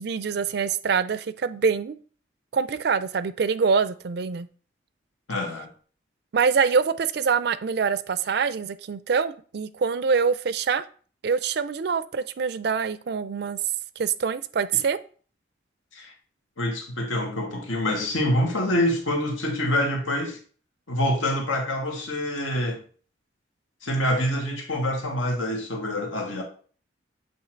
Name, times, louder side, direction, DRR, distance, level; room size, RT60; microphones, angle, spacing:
voice 1, 0.0-2.0 2.5-4.5 6.3-10.9 11.2-13.6 14.0-15.0, right 5 dB, 55° right, 0.4 m, -25 dB
voice 2, 5.3-5.7 15.9-16.1 16.6-20.4 20.9-22.8 23.8-26.4, left 1 dB, 90° left, 1.6 m, -26 dB
8.2 x 2.9 x 4.4 m
head